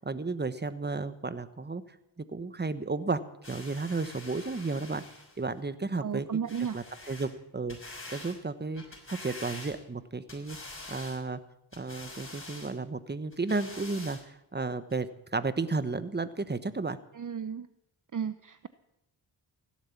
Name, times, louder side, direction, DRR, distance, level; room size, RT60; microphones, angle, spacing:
voice 1, 0.0-1.8 2.2-3.2 3.5-5.0 5.4-6.4 6.7-8.8 9.1-10.6 10.9-11.4 11.8-17.0, right 3 dB, 20° right, 13 dB, 1.2 m, -33 dB
sound 1, 3.4-5.4 6.5-7.3 7.7-8.4 8.8-10.0 10.3-11.2 11.7-12.7 13.3-14.2 14.9-15.0, left 2 dB, 25° left, 6.0 m, -46 dB
voice 2, 6.0-6.8 17.1-17.7 18.1-18.7, right 7 dB, 40° right, 13 dB, 0.8 m, -33 dB
16.5 x 12.0 x 7.2 m, 0.83 s
cardioid pair, 55°, 50 cm